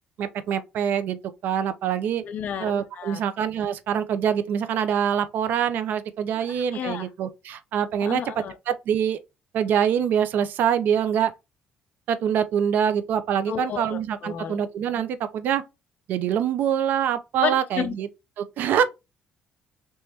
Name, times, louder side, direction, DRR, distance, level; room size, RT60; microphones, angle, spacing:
voice 1, 0.2-2.2 2.6-9.2 9.5-11.3 12.1-15.6 16.1-18.1 18.4-18.8, right 8 dB, 70° right, 0.5 m, -25 dB
voice 2, 2.2-3.2 6.3-7.1 8.0-8.6 13.5-14.6 17.4-17.9, left 8 dB, 55° left, 0.4 m, -32 dB
3.4 x 3.0 x 2.8 m
cardioid pair, 105°, 3 cm